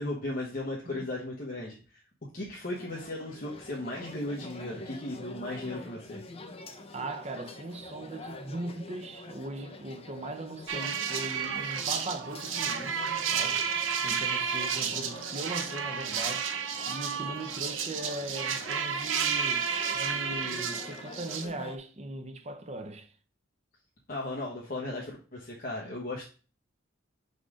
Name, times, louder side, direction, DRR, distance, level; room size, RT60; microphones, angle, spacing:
voice 1, 0.0-1.7 2.3-6.2 24.1-26.2, left 1 dB, 45° left, 1.2 m, -36 dB
sound 1, 2.7-21.8, left 2 dB, 30° left, 0.7 m, -46 dB
voice 2, 6.9-13.6 14.0-16.5 16.9-23.1, right 2 dB, 35° right, 0.8 m, -39 dB
sound 2, 10.7-21.5, right 6 dB, 85° right, 0.8 m, -31 dB
5.0 x 4.1 x 4.9 m
head